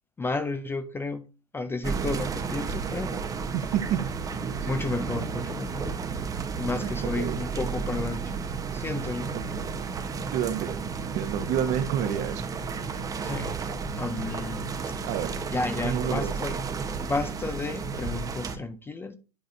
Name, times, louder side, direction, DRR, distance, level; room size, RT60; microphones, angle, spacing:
voice 1, 0.2-1.3 1.5-3.3 4.6-6.0 6.6-8.5 8.7-9.3 13.2-13.6 14.0-15.1 15.5-19.1, left 3 dB, 10° left, 0.6 m, -32 dB
sound 1, 1.8-18.6, right 5 dB, 20° right, 1.0 m, -32 dB
voice 2, 3.5-4.0 4.6-4.7 6.8-7.4 9.3-9.7 10.3-12.4 15.0-15.4 15.8-16.3, right 9 dB, 40° right, 1.2 m, -29 dB
10.5 x 4.0 x 4.0 m
hypercardioid pair, 110°, 19 cm